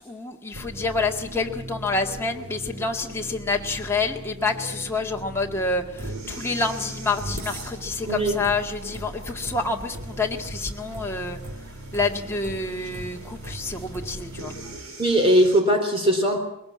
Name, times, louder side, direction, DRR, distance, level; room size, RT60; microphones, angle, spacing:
voice 1, 0.0-11.4 11.9-14.5, left 3 dB, 10° left, 1 dB, 1.8 m, -28 dB
sound 1, 0.5-14.8, right 1 dB, 60° right, 2.1 m, -40 dB
sound 2, 0.5-15.6, right 2 dB, 75° right, 3.8 m, -41 dB
voice 2, 15.0-16.4, equal, 25° right, 4 dB, 3.5 m, -19 dB
21.5 x 18.0 x 8.6 m, 0.82 s
head